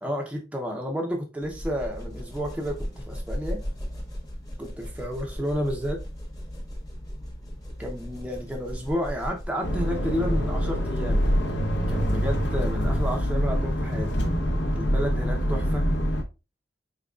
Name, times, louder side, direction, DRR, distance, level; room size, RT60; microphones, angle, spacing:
voice 1, 0.0-3.6 4.6-6.0 7.8-11.3 11.9-14.2 14.8-15.9, equal, 5° right, 0.6 m, -31 dB
sound 1, 1.4-9.7, equal, 20° left, 1.0 m, -36 dB
sound 2, 9.6-16.2, equal, 70° left, 0.7 m, -25 dB
4.4 x 3.8 x 2.3 m
head